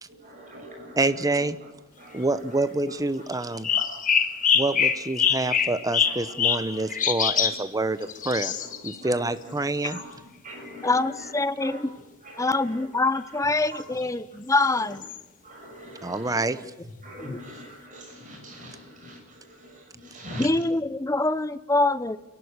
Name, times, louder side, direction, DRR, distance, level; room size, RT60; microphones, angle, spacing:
voice 1, 0.1-1.7 2.0-2.6 2.9-3.0 3.3-4.9 5.4-6.2 6.5-6.9 7.4-7.5 8.5-9.3 9.8-10.0 10.4-11.3 11.6-11.8 12.2-12.8 13.2-13.4 13.7-13.8 14.7-15.0 15.4-16.4 17.0-20.5, equal, 40° right, 1 dB, 6.3 m, -43 dB
voice 2, 1.0-1.6 2.1-3.7 4.5-8.5 8.8-10.0 16.0-16.6, right 2 dB, 15° right, 13 dB, 0.9 m, -27 dB
sound 1, 3.3-7.6 8.0-9.0 9.9-10.0 10.7-10.8 11.1-11.3 14.0-14.1 15.0-15.2, left 7 dB, 40° left, 1.4 m, -25 dB
voice 3, 10.8-11.9 12.4-15.0 17.3-17.4 20.4-22.2, left 2 dB, 15° left, 14 dB, 0.8 m, -24 dB
30.0 x 11.5 x 9.7 m, 1.0 s
head